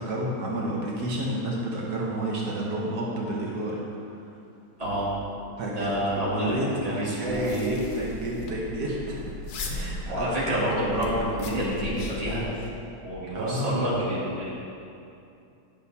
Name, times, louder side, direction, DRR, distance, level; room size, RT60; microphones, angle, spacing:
voice 1, 0.0-3.8 5.6-6.0 6.4-9.2 9.7-10.3 13.3-13.8, right 1 dB, 80° right, -3 dB, 1.5 m, -30 dB
voice 2, 4.8-5.1 5.6-7.8 10.1-12.7 13.0-14.5, right 1 dB, 25° right, -9 dB, 2.0 m, -28 dB
sound 1, 7.2-12.7, left 2 dB, 80° left, 1.3 m, -37 dB
10.5 x 6.5 x 2.8 m, 2.6 s
omnidirectional pair, 1.7 m